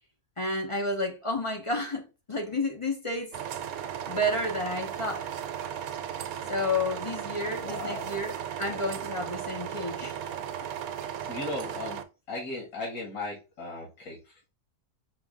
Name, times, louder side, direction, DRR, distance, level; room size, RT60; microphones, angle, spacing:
voice 1, 0.4-3.4 4.1-5.3 6.5-10.2, left 1 dB, 30° left, 0.6 m, -31 dB
sound 1, 3.3-12.0, right 9 dB, 75° right, 1.0 m, -36 dB
voice 2, 7.5-8.1 11.3-12.0 12.3-14.5, left 2 dB, 70° left, 2.2 m, -37 dB
6.0 x 2.5 x 3.5 m
omnidirectional pair, 1.6 m